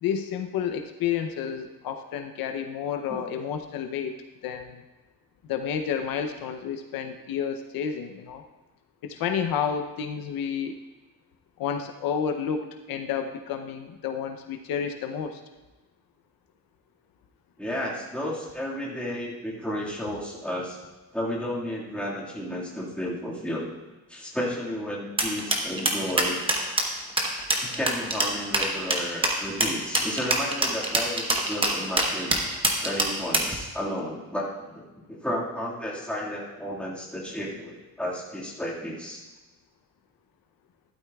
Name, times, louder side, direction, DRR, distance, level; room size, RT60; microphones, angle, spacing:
voice 1, 0.0-4.1 4.4-4.8 5.5-8.4 9.0-10.8 11.6-15.4, left 7 dB, 70° left, 6 dB, 0.7 m, -30 dB
voice 2, 17.6-20.8 21.1-23.7 24.1-26.4 27.7-32.4 32.8-39.2, equal, 5° left, -5 dB, 1.8 m, -32 dB
sound 1, 25.2-33.6, right 2 dB, 15° right, 1.1 m, -24 dB
12.5 x 12.0 x 2.3 m, 1.2 s
cardioid pair, 165°, 36 cm